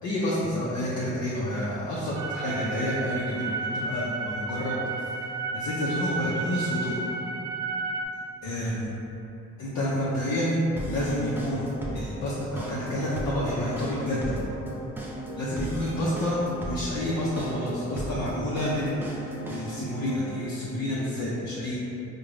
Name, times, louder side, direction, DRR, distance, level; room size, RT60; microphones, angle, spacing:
voice 1, 0.0-4.7 5.5-7.0 8.4-9.0 9.6-10.6 10.9-14.4 15.4-21.8, left 1 dB, 65° left, -7 dB, 0.6 m, -29 dB
sound 1, 2.2-8.1, right 3 dB, 80° right, 0.5 m, -32 dB
sound 2, 10.8-20.4, right 1 dB, 5° right, 0.5 m, -37 dB
3.7 x 2.2 x 3.2 m, 2.9 s
cardioid pair, 90°, 30 cm